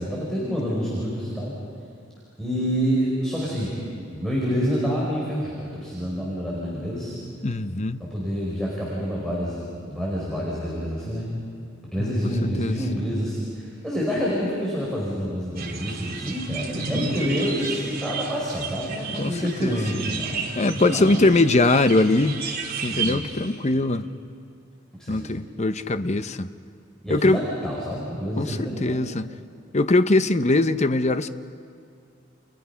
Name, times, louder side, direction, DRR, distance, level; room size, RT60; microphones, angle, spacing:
voice 1, 0.0-1.5 2.4-3.9 4.1-7.2 8.0-11.3 11.9-20.4 20.7-21.1 22.8-23.5 25.0-25.4 27.0-29.0, equal, 5° left, 5.1 m, -28 dB
voice 2, 7.4-8.0 12.0-12.1 12.4-12.8 17.0-17.1 19.2-19.8 20.6-22.4 22.8-24.1 25.1-26.5 27.1-27.4 28.4-29.3 29.7-31.3, left 2 dB, 35° left, 0.8 m, -21 dB
sound 1, 15.6-23.2, right 4 dB, 50° right, 3.2 m, -32 dB
30.0 x 29.5 x 5.8 m
head